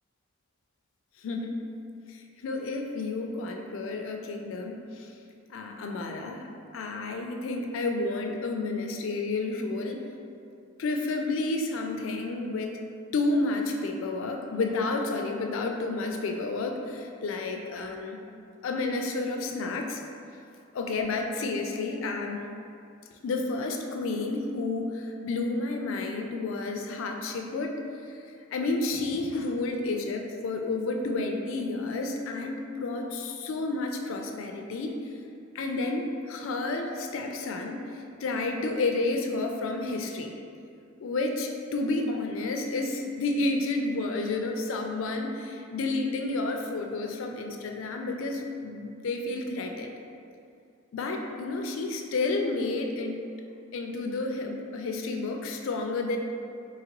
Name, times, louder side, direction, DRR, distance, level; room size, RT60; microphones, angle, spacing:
voice 1, 1.2-1.7 2.1-5.1 5.5-6.5 6.7-10.0 10.8-12.8 13.1-18.2 18.6-20.0 20.7-22.4 23.2-27.8 28.1-28.2 28.5-35.0 35.5-37.8 38.2-40.3 41.0-49.9 50.9-53.2 53.7-56.2, left 3 dB, 70° left, 3 dB, 0.4 m, -30 dB
3.8 x 2.9 x 2.9 m, 2.5 s
head